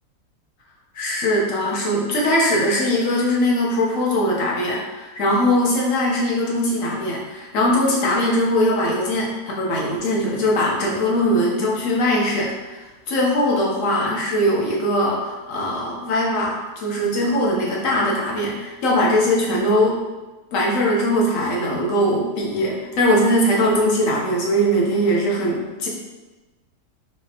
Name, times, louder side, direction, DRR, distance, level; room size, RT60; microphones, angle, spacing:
voice 1, 0.9-20.0 20.5-25.9, equal, 55° left, -3 dB, 1.1 m, -21 dB
4.9 x 2.8 x 2.8 m, 1.2 s
omnidirectional pair, 1.8 m